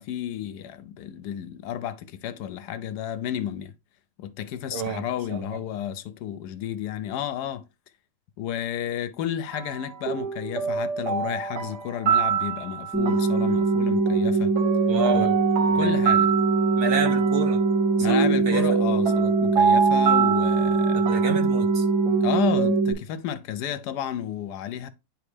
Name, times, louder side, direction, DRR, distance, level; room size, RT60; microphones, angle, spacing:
voice 1, 0.0-3.7 4.2-7.7 8.4-14.5 15.1-15.3 15.7-16.3 18.0-21.0 22.2-24.9, left 10 dB, 85° left, 1.2 m, -32 dB
voice 2, 4.7-5.6 14.9-15.4 15.7-16.0 16.7-17.6 18.0-18.8 20.9-21.9, right 4 dB, 45° right, 0.9 m, -30 dB
sound 1, 9.5-22.8, right 7 dB, 85° right, 1.4 m, -27 dB
sound 2, 12.9-22.9, right 4 dB, 10° left, 2.1 m, -22 dB
9.6 x 3.3 x 3.2 m
omnidirectional pair, 1.7 m